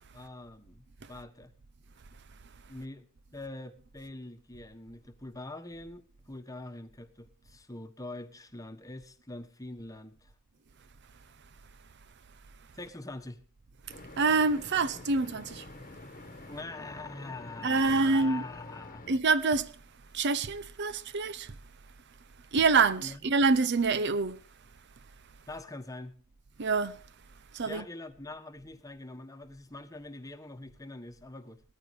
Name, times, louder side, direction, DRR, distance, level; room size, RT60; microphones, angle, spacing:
voice 1, 0.1-1.5 2.7-3.1 3.3-10.3 12.7-13.4 16.4-19.1 23.0-23.2 25.5-26.2 27.6-31.6, left 2 dB, 15° left, 1.2 m, -44 dB
sound 1, 13.9-19.2, left 2 dB, 40° left, 1.2 m, -48 dB
voice 2, 14.2-15.7 17.6-18.4 19.1-19.7 20.1-21.6 22.5-24.4 26.6-27.0 27.5-27.8, right 4 dB, 55° right, 0.6 m, -26 dB
19.5 x 14.0 x 3.2 m
head